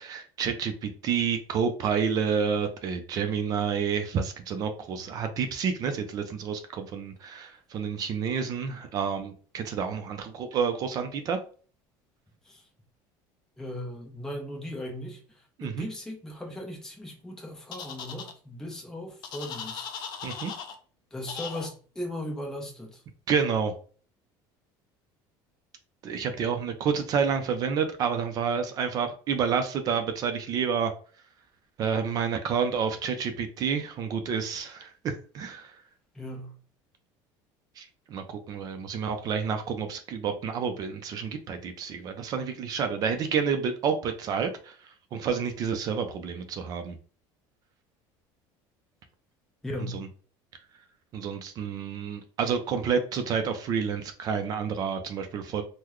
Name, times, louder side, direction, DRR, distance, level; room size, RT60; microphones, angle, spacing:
voice 1, 0.0-11.4 15.6-15.9 20.2-20.5 23.3-23.7 26.0-30.9 31.8-35.7 37.8-44.8 45.1-47.0 49.8-50.1 51.1-55.6, right 6 dB, 40° right, 7 dB, 0.5 m, -29 dB
voice 2, 13.6-15.2 15.6-19.9 21.1-23.0 36.1-36.5 49.6-50.0, left 1 dB, 5° left, 0 dB, 0.7 m, -37 dB
sound 1, 17.7-18.3 19.2-20.8 21.3-21.7, left 7 dB, 50° left, 0.5 m, -38 dB
3.8 x 2.1 x 3.1 m, 0.41 s
cardioid pair, 155°, 10 cm